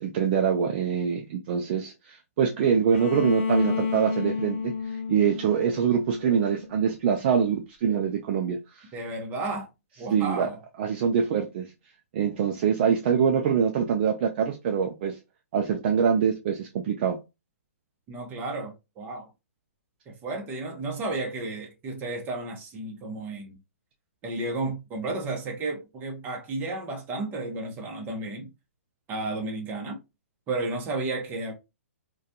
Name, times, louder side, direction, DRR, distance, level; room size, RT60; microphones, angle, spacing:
voice 1, 0.0-8.9 10.1-10.5 10.8-11.7 12.1-15.2 15.5-17.2, right 7 dB, 40° right, 0.4 m, -24 dB
Bowed string instrument, 2.9-6.8, left 5 dB, 45° left, 0.5 m, -31 dB
voice 2, 8.9-9.7 10.0-10.6 18.1-19.3 20.1-23.6 24.2-28.5 29.1-30.0 30.5-31.5, right 2 dB, 20° right, 0.8 m, -32 dB
2.3 x 2.2 x 2.7 m
hypercardioid pair, 145°, 8 cm